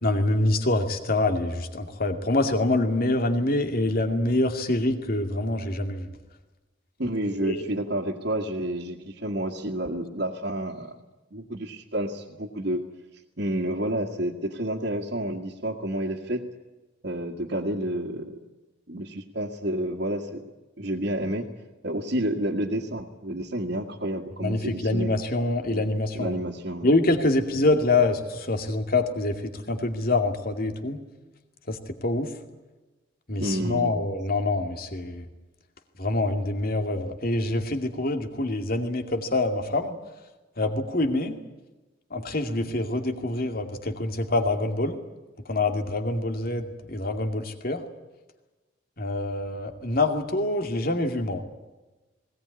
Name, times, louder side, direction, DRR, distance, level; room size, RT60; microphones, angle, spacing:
voice 1, 0.0-6.1 7.4-7.7 24.4-26.4 26.8-31.0 31.7-32.3 33.3-35.2 36.0-40.0 40.6-41.4 42.1-45.0 45.5-47.8 49.0-51.4, left 2 dB, 50° left, 5 dB, 2.4 m, -25 dB
voice 2, 7.0-11.0 11.3-12.8 13.4-16.5 17.0-18.4 18.9-20.5 20.8-21.4 21.8-25.1 25.7-25.8 26.1-26.9 33.4-34.0, right 1 dB, 60° right, -3 dB, 1.9 m, -30 dB
20.5 x 18.5 x 9.8 m, 1.1 s
head